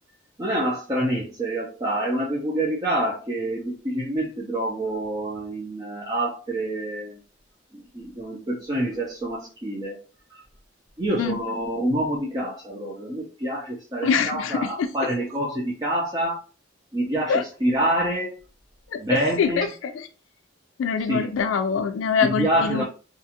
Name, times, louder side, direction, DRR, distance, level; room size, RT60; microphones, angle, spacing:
voice 1, 0.4-7.2 7.9-10.0 11.0-16.4 16.9-18.3 19.0-19.7 21.1-21.3 22.2-22.8, right 1 dB, 20° right, -2 dB, 0.5 m, -26 dB
voice 2, 14.0-15.1 17.3-17.4 18.9-20.1 20.8-22.8, left 5 dB, 80° left, 6 dB, 0.3 m, -24 dB
2.4 x 2.3 x 2.8 m, 0.36 s
head